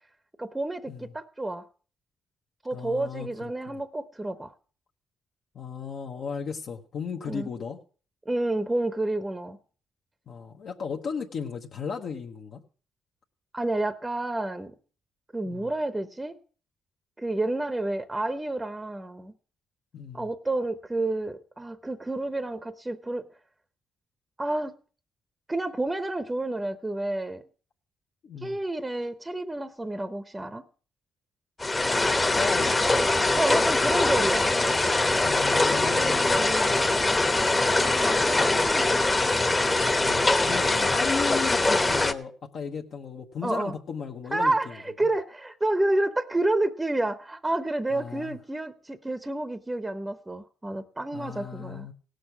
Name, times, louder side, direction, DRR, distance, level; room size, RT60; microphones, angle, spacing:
voice 1, 0.4-1.6 2.6-4.5 7.3-7.5 8.3-9.6 13.5-14.7 15.3-16.4 17.2-19.3 20.1-23.2 24.4-24.7 25.5-27.4 28.4-30.6 33.4-34.5 35.9-36.8 37.8-39.1 43.4-43.7 44.3-51.9, right 2 dB, 15° right, 12 dB, 0.7 m, -30 dB
voice 2, 2.7-3.8 5.5-7.8 10.3-12.6 15.4-15.7 19.9-20.3 28.2-28.6 32.3-32.8 35.2-36.3 40.0-45.1 47.9-48.4 51.1-51.9, left 6 dB, 60° left, 1 dB, 1.0 m, -35 dB
sound 1, 31.6-42.1, left 2 dB, 20° left, 0.9 m, -23 dB
17.0 x 6.5 x 6.0 m, 0.41 s
cardioid pair, 90°, 0 cm